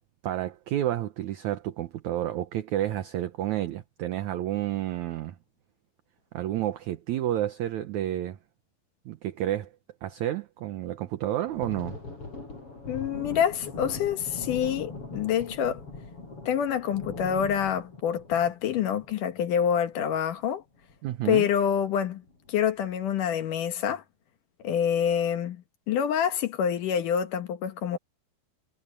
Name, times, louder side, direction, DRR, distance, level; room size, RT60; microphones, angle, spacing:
voice 1, 0.2-5.4 6.3-8.4 9.1-9.7 10.0-12.0 21.0-21.5, right 13 dB, 70° right, 2.0 m, -30 dB
Thunder, 11.5-20.4 20.8-21.0 21.4-21.6 22.2-22.7, left 3 dB, 40° left, 7.1 m, -41 dB
voice 2, 12.9-15.8 16.5-20.6 21.3-22.2 22.5-24.0 24.6-28.0, left 8 dB, 70° left, 2.8 m, -27 dB
omnidirectional pair, 4.1 m